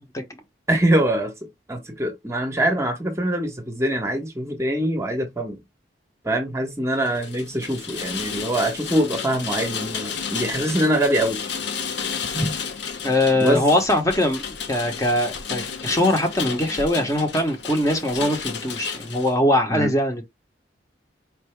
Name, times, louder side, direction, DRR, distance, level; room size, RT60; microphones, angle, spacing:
voice 1, 0.7-5.6 6.2-11.4 12.3-12.5 13.3-13.6 19.7-19.9, right 1 dB, 15° right, 0.8 m, -23 dB
Rain, 7.0-19.3, left 6 dB, 70° left, 0.8 m, -32 dB
voice 2, 13.0-20.2, left 1 dB, 20° left, 0.8 m, -22 dB
4.6 x 2.6 x 3.2 m
head